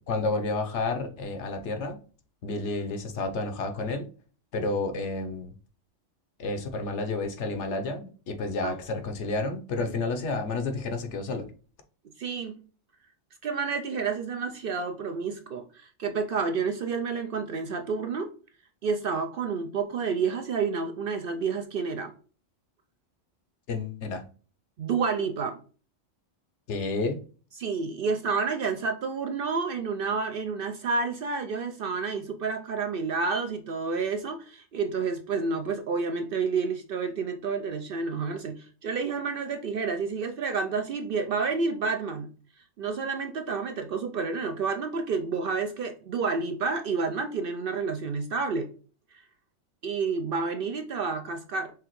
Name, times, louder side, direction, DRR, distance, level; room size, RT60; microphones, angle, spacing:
voice 1, 0.1-2.0 2.4-4.1 4.5-5.5 6.4-11.5 23.7-24.2 26.7-27.2, left 3 dB, 70° left, 1.1 m, -30 dB
voice 2, 12.2-12.6 13.4-18.3 18.8-22.1 24.8-25.6 27.6-42.3 42.8-48.7 49.1-49.2 49.8-51.7, right 5 dB, 60° right, 0.6 m, -29 dB
4.9 x 3.4 x 3.0 m
omnidirectional pair, 1.3 m